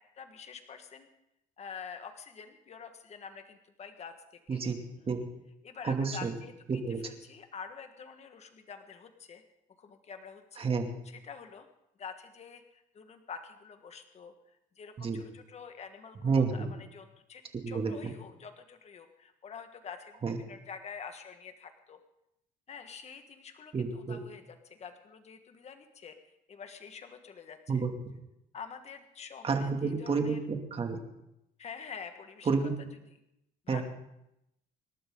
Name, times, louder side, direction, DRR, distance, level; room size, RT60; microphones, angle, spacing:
voice 1, 0.2-1.1 1.6-4.6 5.0-5.2 5.6-9.4 9.8-10.7 11.0-11.7 12.0-22.0 22.7-26.2 26.5-27.9 28.5-30.4 31.6-32.5 33.6-33.8, left 6 dB, 40° left, 7 dB, 1.6 m, -47 dB
voice 2, 4.5-5.2 5.8-6.3 6.7-7.0 10.6-10.9 15.0-15.2 16.2-16.7 17.6-18.1 20.2-20.4 23.7-24.2 27.7-27.9 29.4-31.0 32.5-32.7 33.7-33.8, right 4 dB, 35° right, 4 dB, 2.6 m, -30 dB
26.5 x 12.0 x 3.9 m, 0.84 s
cardioid pair, 110°, 17 cm